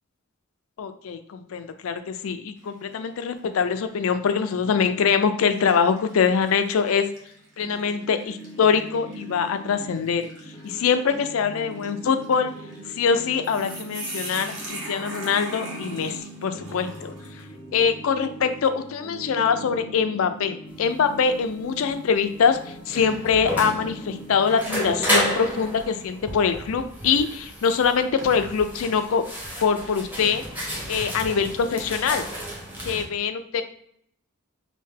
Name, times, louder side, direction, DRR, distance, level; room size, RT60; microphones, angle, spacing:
voice 1, 0.8-7.1 7.6-10.3 10.6-12.5 13.0-16.2 16.4-17.1 17.7-29.2 29.6-30.4 30.9-32.3 32.8-33.6, left 6 dB, 70° left, 9 dB, 0.4 m, -23 dB
sound 1, 2.6-3.1 3.6-3.7 4.7-4.9 5.5-17.5, right 1 dB, 90° right, 1.0 m, -41 dB
sound 2, 7.6-24.7, right 1 dB, 10° left, 0.5 m, -42 dB
old elevator door open close, 20.7-33.0, equal, 10° right, 0.9 m, -31 dB
3.2 x 2.7 x 3.3 m, 0.67 s
head